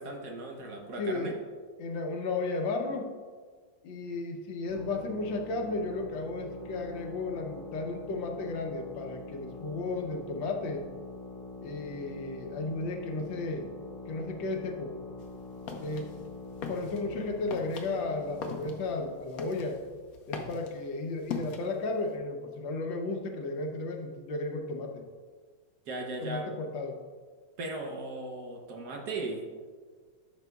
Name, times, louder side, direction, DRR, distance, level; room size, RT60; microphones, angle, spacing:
voice 1, 0.0-1.3 25.9-26.5 27.6-29.5, right 2 dB, 60° right, 2 dB, 1.3 m, -37 dB
voice 2, 1.0-1.4 1.8-3.1 3.8-10.8 11.6-13.7 14.1-14.9 15.8-16.1 16.7-19.8 20.3-25.0 26.2-27.0, left 3 dB, 75° left, 3 dB, 1.5 m, -34 dB
sound 1, 4.7-19.2, left 3 dB, 30° left, 1.3 m, -44 dB
sound 2, 15.2-22.1, left 4 dB, 60° left, 1.0 m, -42 dB
11.5 x 6.0 x 2.3 m, 1.5 s
omnidirectional pair, 2.1 m